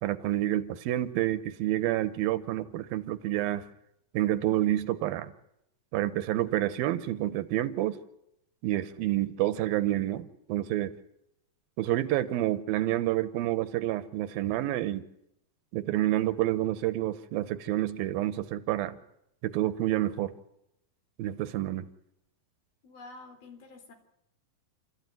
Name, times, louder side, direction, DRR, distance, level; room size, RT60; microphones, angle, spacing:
voice 1, 0.0-3.7 4.1-5.3 5.9-8.0 8.6-10.9 11.8-15.1 15.7-19.0 19.4-20.3 21.2-21.9, right 14 dB, 80° right, 14 dB, 2.7 m, -28 dB
voice 2, 22.8-23.9, left 3 dB, 75° left, 5 dB, 5.5 m, -48 dB
30.0 x 14.0 x 9.3 m, 0.82 s
omnidirectional pair, 4.3 m